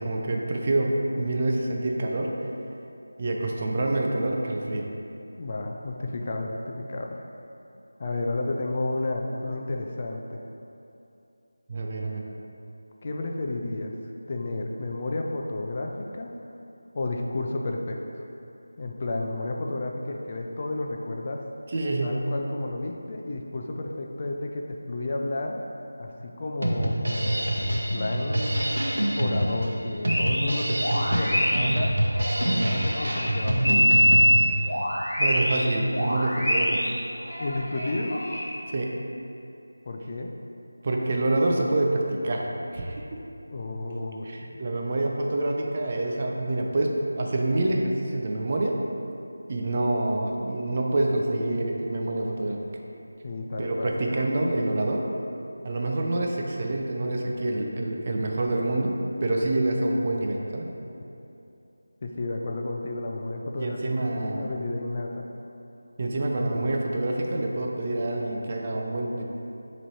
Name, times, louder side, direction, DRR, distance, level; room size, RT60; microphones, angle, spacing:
voice 1, 0.0-2.4 3.2-4.9 11.7-12.2 21.7-22.2 35.2-36.9 38.7-39.0 40.8-43.2 44.2-48.8 49.5-52.6 53.6-55.1 55.6-60.7 63.6-64.5 66.0-69.2, right 2 dB, 35° right, 0 dB, 0.4 m, -27 dB
voice 2, 5.4-7.2 8.0-10.4 13.0-13.9 14.3-16.3 16.9-18.2 18.8-21.4 22.0-25.6 26.0-28.7 29.2-31.9 32.5-34.1 37.4-38.2 39.9-40.3 43.5-44.6 53.2-54.0 62.0-63.8 64.1-65.3, left 2 dB, 35° left, 1 dB, 0.3 m, -32 dB
Drum kit, 26.6-34.2, right 1 dB, 70° right, 0.7 m, -26 dB
sound 1, 30.1-30.5 30.8-35.7 35.9-38.5, equal, 10° left, 1.5 m, -24 dB
6.0 x 3.0 x 2.8 m, 2.8 s
figure-of-eight pair, 165°, 0 cm